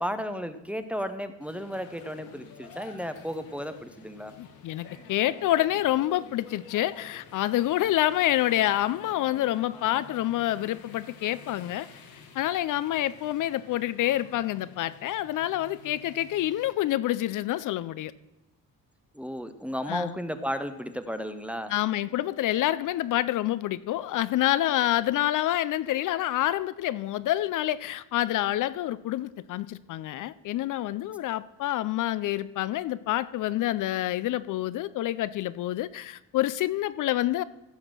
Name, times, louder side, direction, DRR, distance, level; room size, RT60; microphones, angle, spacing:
voice 1, 0.0-4.3 19.1-21.7, equal, 5° right, 9 dB, 0.6 m, -34 dB
sound 1, 1.4-16.7, left 5 dB, 85° left, 1.9 m, -50 dB
voice 2, 4.4-11.9 12.3-18.1 19.9-20.2 21.7-37.4, left 14 dB, 65° left, 16 dB, 0.5 m, -27 dB
15.5 x 5.9 x 6.1 m, 0.95 s
cardioid pair, 130°, 34 cm